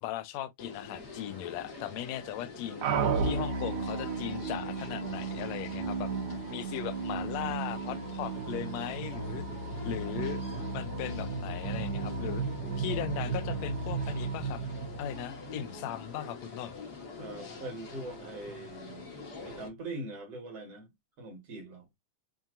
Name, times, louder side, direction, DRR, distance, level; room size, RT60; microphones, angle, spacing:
voice 1, 0.0-2.9 3.2-6.1 6.5-9.4 9.8-10.4 10.7-12.4 12.8-14.6 15.0-16.8, left 12 dB, 75° left, 1.8 m, -38 dB
sound 1, 0.6-19.7, left 4 dB, 55° left, 1.1 m, -45 dB
sound 2, 2.8-15.7, right 4 dB, 80° right, 2.5 m, -34 dB
voice 2, 17.2-19.0 19.5-20.9 21.2-21.9, right 2 dB, 55° right, 2.5 m, -42 dB
7.2 x 2.8 x 2.5 m
omnidirectional pair, 3.5 m